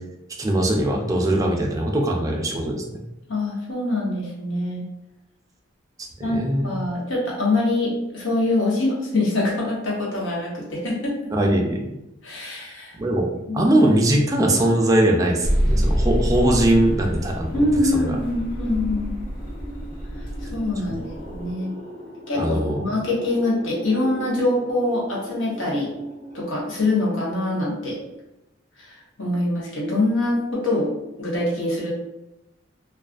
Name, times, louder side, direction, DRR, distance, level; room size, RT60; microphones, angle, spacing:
voice 1, 0.4-3.0 6.3-6.7 11.3-11.8 12.9-13.3 13.5-17.6 17.9-18.1 20.9-21.0 22.3-22.8, right 1 dB, 20° right, 0 dB, 0.3 m, -21 dB
voice 2, 3.3-4.8 6.2-11.2 12.2-13.0 13.5-13.6 17.5-19.1 20.5-21.7 22.3-25.9 26.3-28.0 28.8-30.9 31.2-31.9, left 2 dB, 85° left, -5 dB, 0.9 m, -24 dB
sound 1, 15.4-21.5, equal, 30° left, 0.8 m, -26 dB
sound 2, 16.7-27.7, equal, 50° left, 1.2 m, -41 dB
2.4 x 2.3 x 2.3 m, 0.93 s
head